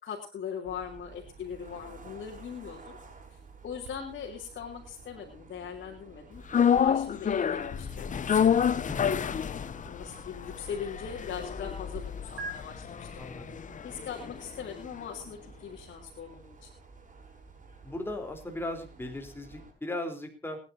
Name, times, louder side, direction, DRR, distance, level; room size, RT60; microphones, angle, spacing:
voice 1, 0.0-3.0 3.6-6.4 6.7-8.8 9.2-9.5 9.9-13.2 13.8-16.7, left 7 dB, 60° left, -1 dB, 3.5 m, -40 dB
sound 1, 0.6-19.7, right 4 dB, 40° right, 7.1 m, -52 dB
headset pair, 3.8-12.0 12.4-12.5, right 3 dB, 80° right, 6.5 m, -49 dB
sound 2, 6.5-14.8 15.1-15.2, left 8 dB, 40° left, 0.8 m, -29 dB
voice 2, 13.2-13.5 17.8-20.6, left 1 dB, 10° left, 3 dB, 3.9 m, -37 dB
29.0 x 10.5 x 2.8 m, 0.30 s
cardioid pair, 90°, 20 cm